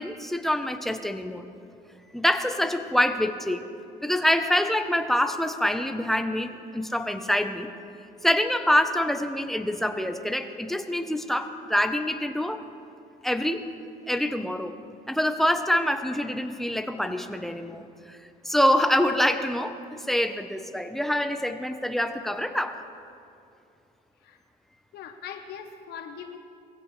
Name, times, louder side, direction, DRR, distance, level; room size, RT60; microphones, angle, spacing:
voice 1, 0.0-1.5 2.1-3.7 4.0-7.7 8.2-12.6 13.2-13.6 14.1-14.8 15.1-18.2 18.4-22.8, left 1 dB, ahead, 7 dB, 0.9 m, -26 dB
voice 2, 24.9-26.4, left 7 dB, 75° left, 6 dB, 1.1 m, -40 dB
22.0 x 16.0 x 3.3 m, 2.5 s
cardioid pair, 110°, 17 cm